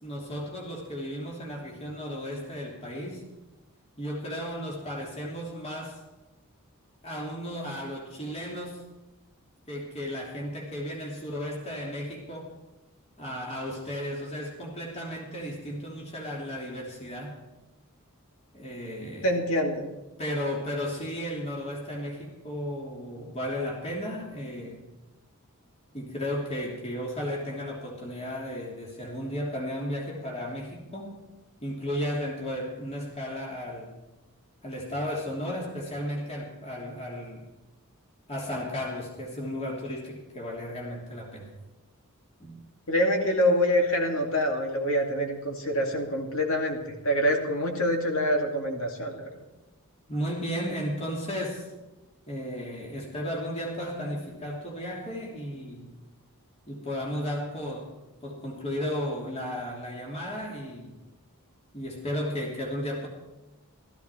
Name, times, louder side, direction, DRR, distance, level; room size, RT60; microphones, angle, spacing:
voice 1, 0.0-3.2 4.0-6.0 7.0-8.9 9.7-12.5 13.2-17.4 18.5-19.4 20.2-24.9 25.9-31.2 31.6-34.0 34.6-37.5 38.3-41.5 42.4-42.6 50.1-51.7 52.3-56.0 56.7-57.9 58.2-61.0 61.7-63.1, equal, 30° left, -2 dB, 3.0 m, -34 dB
voice 2, 19.2-19.9 42.9-49.3, equal, 65° left, 1 dB, 2.5 m, -26 dB
15.5 x 14.5 x 4.5 m, 1.1 s
head